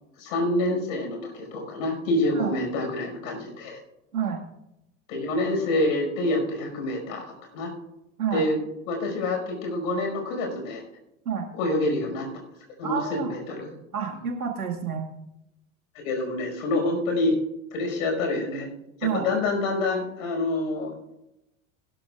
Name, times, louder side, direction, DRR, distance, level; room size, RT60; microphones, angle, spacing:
voice 1, 0.2-3.8 5.1-7.2 7.5-7.7 8.3-8.6 8.9-10.8 11.5-12.3 12.8-13.7 16.0-17.4 17.7-18.7 19.1-20.9, left 2 dB, 70° left, 2 dB, 5.4 m, -27 dB
voice 2, 12.8-13.3 13.9-15.1 19.0-19.3, right 7 dB, 85° right, 2 dB, 2.0 m, -28 dB
21.0 x 12.0 x 2.4 m, 0.88 s
hypercardioid pair, 75°, 43 cm